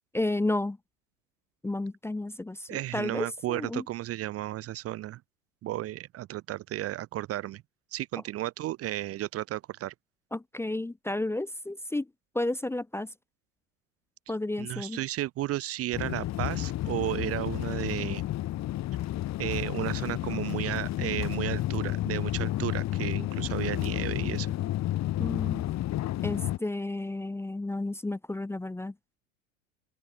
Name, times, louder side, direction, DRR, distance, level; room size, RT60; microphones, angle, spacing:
voice 1, 0.1-0.8 1.6-3.8 10.3-12.1 12.3-13.1 14.3-15.0 25.2-25.6 26.2-28.9, left 2 dB, 5° left, 0.8 m, -32 dB
voice 2, 2.7-5.2 5.6-7.6 7.9-9.9 14.6-18.2 19.4-24.5, right 14 dB, 35° right, 0.8 m, -33 dB
sound 1, 15.9-26.6, left 14 dB, 40° left, 1.9 m, -31 dB
open air
hypercardioid pair, 85°, 41 cm